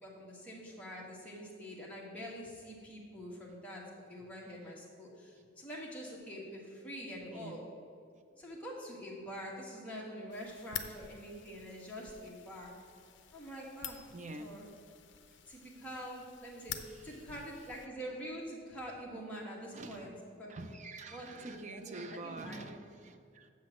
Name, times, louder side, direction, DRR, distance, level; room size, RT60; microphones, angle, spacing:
voice 1, 0.0-3.8 4.1-7.6 8.4-12.7 13.3-14.1 14.4-14.7 15.5-16.8 17.0-20.6 21.1-22.7, equal, 5° left, -4 dB, 1.6 m, -45 dB
voice 2, 7.3-7.7 14.1-14.5 17.0-17.1 19.7-20.2 20.5-23.5, right 2 dB, 35° right, 8 dB, 0.5 m, -46 dB
sound 1, 10.3-17.9, left 9 dB, 60° left, 0.6 m, -48 dB
7.3 x 5.8 x 7.6 m, 2.3 s
head